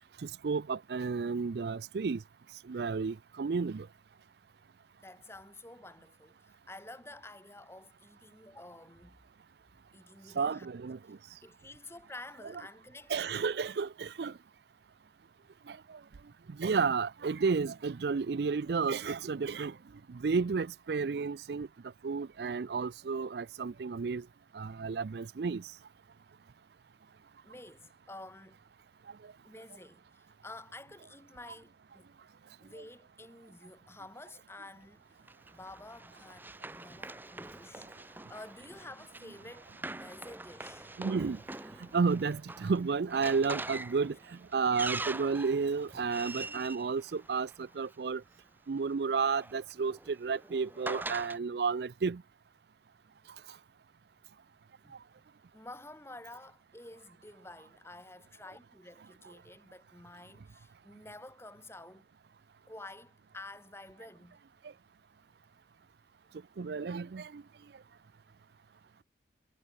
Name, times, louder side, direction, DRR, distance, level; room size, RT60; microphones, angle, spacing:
voice 1, 0.2-2.2 2.6-3.9 10.3-11.2 13.1-14.3 15.7-16.0 16.5-19.8 20.1-21.7 22.0-24.2 24.5-25.6 41.0-41.4 41.8-48.2 48.7-52.2 66.6-67.4, right 5 dB, 65° right, 0.4 m, -32 dB
voice 2, 5.0-9.2 9.9-10.7 11.4-13.5 27.4-28.6 29.4-32.1 32.6-35.0 35.5-40.9 45.2-45.4 54.8-55.0 55.5-62.1 62.7-64.4, left 2 dB, 15° left, 4.3 m, -50 dB
Run, 35.3-47.9 48.9-51.4, right 2 dB, 10° right, 1.1 m, -44 dB
head